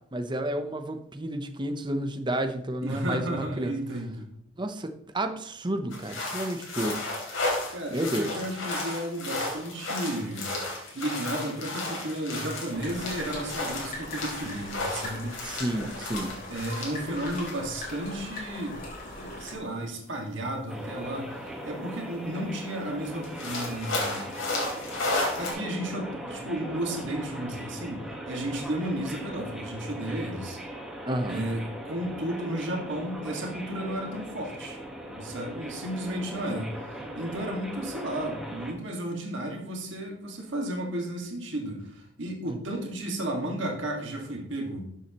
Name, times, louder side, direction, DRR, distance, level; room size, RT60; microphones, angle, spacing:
voice 1, 0.1-3.7 4.6-7.0 7.3-7.4 7.9-8.4 15.4-16.3 24.2-24.3 31.0-31.4, right 1 dB, 25° right, 7 dB, 0.8 m, -31 dB
voice 2, 2.8-4.3 7.7-10.5 10.9-15.4 16.5-24.3 25.4-30.6 31.3-34.8 35.1-44.9, right 1 dB, 65° right, 0 dB, 1.9 m, -33 dB
sound 1, 5.9-17.8 18.1-18.2 19.2-19.3 21.5-21.6 22.0-22.1 22.4-22.5 23.2-25.5, left 2 dB, 80° left, 3.2 m, -33 dB
sound 2, 12.7-19.6, left 1 dB, 45° left, 3.5 m, -40 dB
sound 3, 20.7-38.7, equal, ahead, 1.4 m, -39 dB
13.0 x 7.4 x 3.0 m, 0.73 s
head